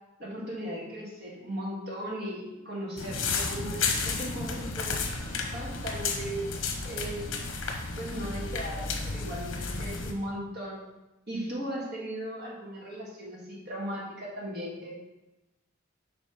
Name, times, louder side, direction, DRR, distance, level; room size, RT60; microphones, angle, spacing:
voice 1, 0.2-5.0 5.5-6.5 6.8-7.3 8.0-10.8 11.3-15.0, right 1 dB, 50° right, -4 dB, 1.6 m, -37 dB
sound 1, 3.0-10.1, left 4 dB, 70° left, 0.9 m, -32 dB
6.7 x 3.4 x 5.1 m, 1.0 s
head